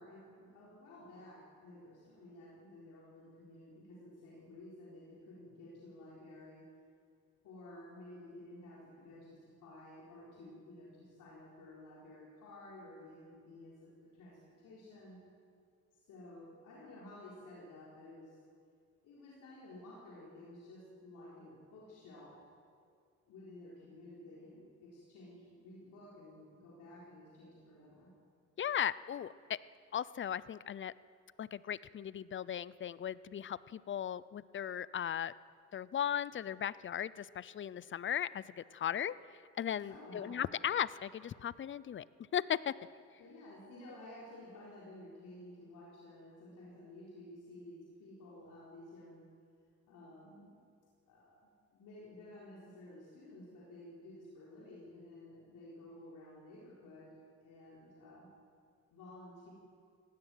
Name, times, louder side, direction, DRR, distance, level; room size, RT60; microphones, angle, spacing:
voice 1, 0.0-6.7 7.4-15.2 16.0-18.4 19.0-22.4 23.3-28.1 39.8-40.4 43.2-49.3 49.9-50.6 51.1-58.3 58.9-59.5, left 1 dB, 85° left, -5 dB, 4.1 m, -53 dB
voice 2, 28.6-29.6 29.9-30.9 31.4-35.3 35.7-39.1 39.6-42.1 42.3-42.7, left 9 dB, 40° left, 19 dB, 0.6 m, -37 dB
17.0 x 16.5 x 9.1 m, 2.3 s
cardioid pair, 90°, 30 cm